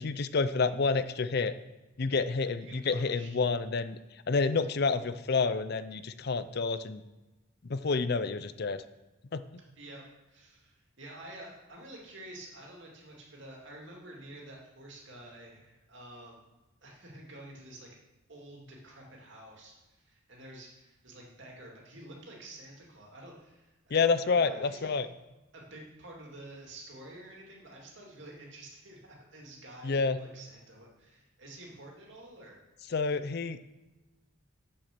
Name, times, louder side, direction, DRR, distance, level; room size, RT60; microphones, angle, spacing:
voice 1, 0.0-1.5 2.0-4.0 4.3-7.0 7.7-8.8 9.3-9.4 23.9-25.1 29.8-30.2 32.9-33.6, left 4 dB, 50° left, 13 dB, 0.5 m, -29 dB
voice 2, 2.6-3.3 9.8-16.4 16.8-17.9 18.3-24.9 25.5-32.6, right 1 dB, 60° right, -1 dB, 2.6 m, -49 dB
7.6 x 7.4 x 6.7 m, 1.1 s
head